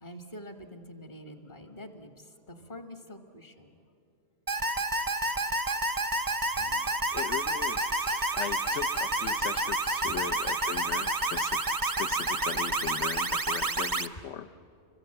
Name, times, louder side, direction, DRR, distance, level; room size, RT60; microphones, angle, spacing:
voice 1, 0.0-3.8 6.5-7.0 7.3-7.4, equal, 40° left, 6 dB, 1.7 m, -46 dB
sound 1, 4.5-14.1, right 2 dB, 25° right, 0.5 m, -29 dB
voice 2, 7.1-14.5, left 9 dB, 70° left, 11 dB, 1.1 m, -39 dB
sound 2, 7.5-13.2, left 1 dB, 85° left, 1.7 m, -50 dB
29.0 x 24.5 x 7.8 m, 2.6 s
omnidirectional pair, 1.3 m